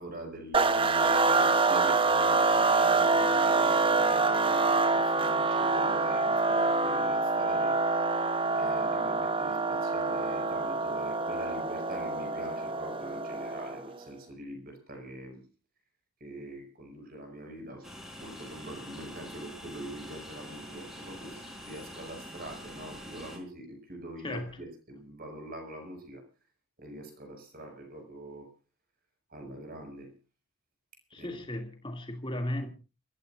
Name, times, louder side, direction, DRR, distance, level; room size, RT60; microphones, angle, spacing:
voice 1, 0.0-7.8 8.5-15.4 16.2-17.9 18.2-26.2 26.8-28.5 29.3-30.1 31.2-31.6, right 1 dB, 40° right, 6.0 m, -43 dB
sound 1, 0.5-13.9, right 3 dB, 25° right, 0.9 m, -26 dB
Train, 17.8-23.4, equal, ahead, 4.1 m, -45 dB
voice 2, 31.1-32.7, left 1 dB, 20° left, 2.5 m, -35 dB
30.0 x 14.0 x 2.6 m
head